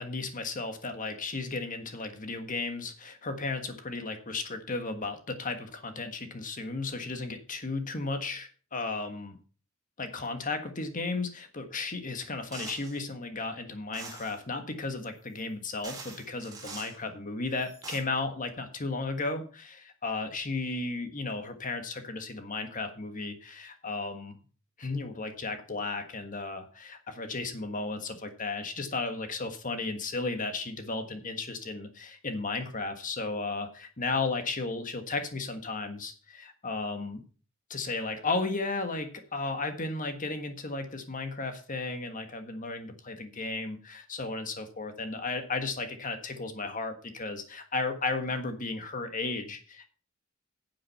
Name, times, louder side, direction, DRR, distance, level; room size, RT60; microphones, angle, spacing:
voice 1, 0.0-9.4 10.0-24.4 24.8-37.2 37.7-49.9, left 3 dB, 40° left, 7 dB, 1.5 m, -34 dB
sound 1, 12.5-13.0 13.9-14.4 15.4-15.5 15.8-17.0 17.6-18.0, right 4 dB, 20° right, 3.1 m, -43 dB
9.7 x 7.6 x 5.7 m, 0.39 s
head